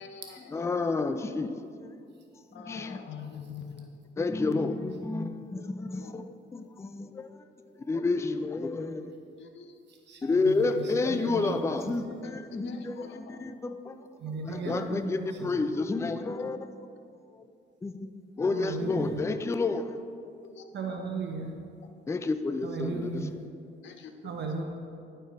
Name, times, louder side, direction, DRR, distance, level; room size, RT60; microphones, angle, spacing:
voice 1, 0.0-0.7 2.5-3.9 4.4-4.9 5.9-6.2 9.4-9.8 12.2-13.4 19.9-20.7 21.0-21.3 23.8-24.3, left 6 dB, 65° left, 7 dB, 0.8 m, -46 dB
voice 2, 0.5-1.5 1.8-2.0 2.5-3.0 4.2-9.1 10.2-14.0 14.5-16.7 17.3-17.4 17.8-19.9 22.1-23.2, left 3 dB, 15° left, 10 dB, 0.4 m, -30 dB
voice 3, 9.9-11.9 14.2-15.7 18.5-19.2 20.7-21.5 22.6-23.3 24.2-24.6, right 4 dB, 60° right, 2 dB, 1.0 m, -36 dB
10.5 x 4.5 x 4.7 m, 2.4 s
cardioid pair, 90°, 20 cm